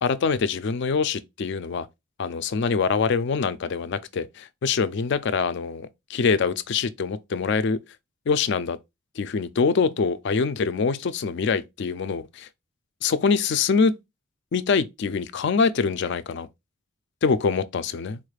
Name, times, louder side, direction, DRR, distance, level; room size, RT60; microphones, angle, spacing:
voice 1, 0.0-1.9 2.2-7.8 8.3-8.8 9.2-12.5 13.0-14.0 14.5-16.5 17.2-18.2, left 5 dB, 50° left, 0.3 m, -24 dB
4.0 x 2.3 x 3.2 m
head